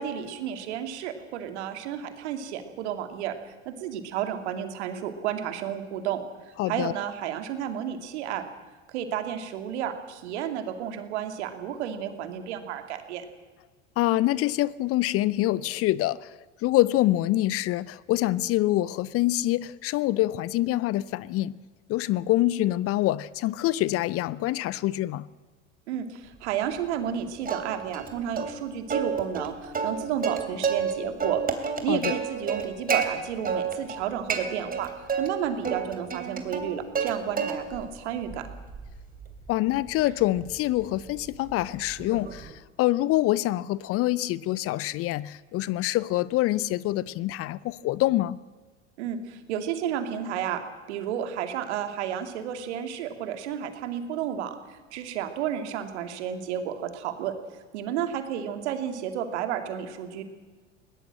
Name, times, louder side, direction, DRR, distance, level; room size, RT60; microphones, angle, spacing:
voice 1, 0.0-6.2 6.4-8.4 8.9-13.2 25.9-31.4 31.8-34.9 35.2-38.5 49.0-50.6 50.9-57.4 57.7-60.2, right 9 dB, 65° right, 2.5 m, -32 dB
voice 2, 6.6-6.9 14.0-21.6 21.9-25.3 31.9-32.2 39.5-48.4, left 16 dB, 40° left, 0.6 m, -25 dB
Plucked string instrument, 27.5-28.1 28.4-28.5 28.9-30.9 31.2-33.1 33.5-34.0 34.3-35.3 35.6-37.1 37.4-37.9 38.3-42.5, right 6 dB, 25° right, 2.9 m, -30 dB
21.0 x 18.0 x 7.7 m
figure-of-eight pair, 75°, 37 cm